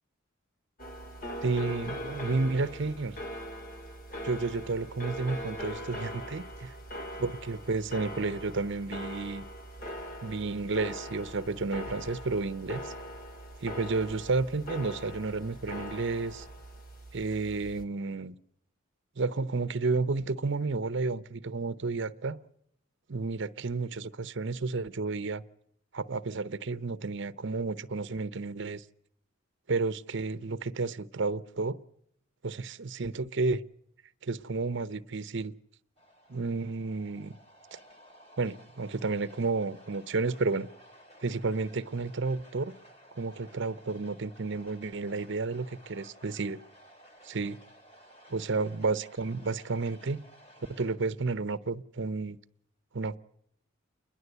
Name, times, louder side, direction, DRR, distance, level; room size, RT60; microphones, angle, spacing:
sound 1, 0.8-17.8, equal, 45° left, 2.4 m, -41 dB
voice 1, 1.4-3.2 4.2-6.7 7.2-9.4 10.2-12.9 13.6-16.5 17.1-18.3 19.2-22.4 23.1-25.4 25.9-28.8 29.7-31.8 32.4-33.6 34.2-35.5 36.3-37.4 37.7-37.8 38.4-40.7 41.2-42.7 43.2-46.6 47.2-47.6 48.3-50.2 50.7-52.4 52.9-53.2, right 3 dB, 65° right, 0.8 m, -31 dB
sound 2, 36.0-51.0, equal, 30° left, 3.1 m, -56 dB
29.0 x 11.0 x 8.0 m
head